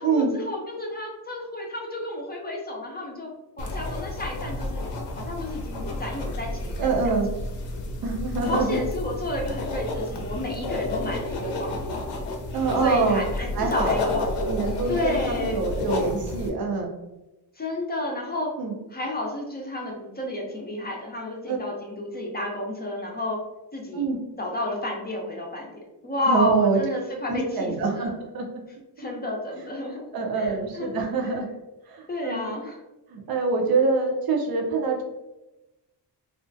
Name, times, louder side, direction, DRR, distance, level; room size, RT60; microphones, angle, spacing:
voice 1, 0.0-3.3 3.6-4.9 5.2-7.1 8.4-12.0 12.8-14.5 14.9-15.6 17.6-18.5 18.9-23.4 23.7-24.1 24.4-25.7 26.0-28.1 29.0-30.1 30.3-31.0 32.1-32.8, left 1 dB, 25° left, -1 dB, 0.5 m, -31 dB
sound 1, 3.6-16.5, left 2 dB, 80° left, 0.6 m, -31 dB
voice 2, 6.8-7.3 8.0-8.8 12.5-13.2 13.6-13.9 14.5-16.9 18.6-18.7 21.5-21.6 23.9-24.2 26.3-26.8 27.3-28.5 30.1-31.5 31.9-32.5 33.1-35.0, right 4 dB, 60° right, 1 dB, 0.6 m, -25 dB
2.4 x 2.1 x 2.5 m, 1.0 s
cardioid pair, 100°, 41 cm